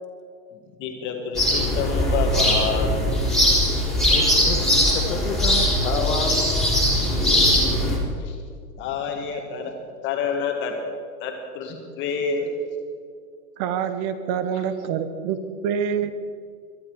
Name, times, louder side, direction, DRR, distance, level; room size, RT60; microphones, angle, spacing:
voice 1, 0.8-3.1 8.2-8.4 8.8-9.7 10.0-10.8 11.2-12.5, left 5 dB, 25° left, 3 dB, 1.7 m, -28 dB
sound 1, 1.4-8.0, equal, ahead, 3.5 m, -20 dB
voice 2, 4.1-4.6 4.9-7.1, left 5 dB, 55° left, 2 dB, 2.0 m, -30 dB
voice 3, 13.6-15.4 15.6-16.1, right 8 dB, 25° right, 11 dB, 0.8 m, -26 dB
23.0 x 11.5 x 4.8 m, 2.2 s
hypercardioid pair, 145°, 49 cm